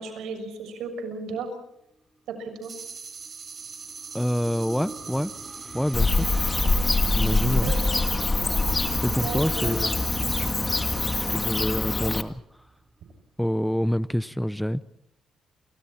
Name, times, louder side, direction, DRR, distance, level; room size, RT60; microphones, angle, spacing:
voice 1, 0.0-1.5 2.3-2.7 7.6-8.0 9.2-9.7, right 4 dB, 80° right, 7 dB, 6.6 m, -34 dB
sound 1, 2.6-11.8, right 5 dB, 45° right, 6.3 m, -42 dB
sound 2, 3.3-12.8, right 2 dB, 15° right, 4.1 m, -41 dB
voice 2, 4.1-5.3 5.7-6.3 7.1-7.7 9.0-10.0 11.1-12.3 13.4-14.8, equal, ahead, 16 dB, 0.8 m, -27 dB
Bird / Cricket, 5.9-12.2, left 3 dB, 25° left, 1.8 m, -24 dB
29.5 x 25.5 x 4.4 m, 0.77 s
cardioid pair, 90°, 0 cm